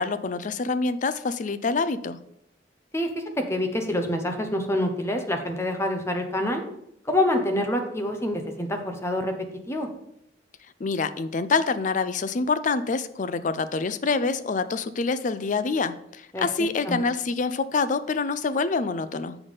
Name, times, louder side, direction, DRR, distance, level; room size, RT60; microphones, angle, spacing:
voice 1, 0.0-2.2 10.8-19.4, left 4 dB, 45° left, 13 dB, 0.4 m, -26 dB
voice 2, 2.9-6.6 7.0-9.3 9.7-9.9 16.3-16.5 16.8-17.0, left 1 dB, 15° left, 4 dB, 1.0 m, -26 dB
7.1 x 5.5 x 5.1 m, 0.76 s
head